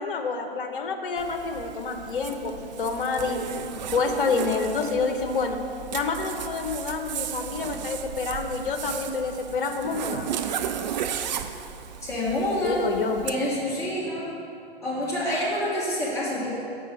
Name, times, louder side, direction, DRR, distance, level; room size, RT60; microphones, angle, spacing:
voice 1, 0.0-5.6 5.9-10.4 12.6-13.2, left 4 dB, 60° left, 5 dB, 1.0 m, -28 dB
Zipper (clothing), 1.2-13.3, right 9 dB, 45° right, 0.5 m, -35 dB
voice 2, 12.0-12.9 13.2-14.3 14.8-16.6, left 1 dB, 10° left, -7 dB, 1.4 m, -27 dB
7.7 x 4.8 x 6.5 m, 2.7 s
figure-of-eight pair, 110°, 30 cm